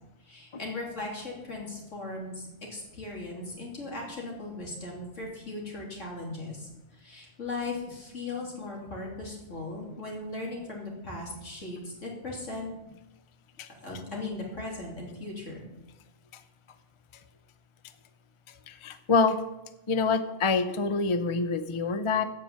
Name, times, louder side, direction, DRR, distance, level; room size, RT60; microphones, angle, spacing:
voice 1, 0.2-12.7 13.8-15.6, left 2 dB, 70° left, -1 dB, 3.5 m, -38 dB
voice 2, 18.7-19.4 19.9-22.2, left 4 dB, 35° left, 10 dB, 0.5 m, -26 dB
15.0 x 5.8 x 7.4 m, 0.98 s
omnidirectional pair, 1.3 m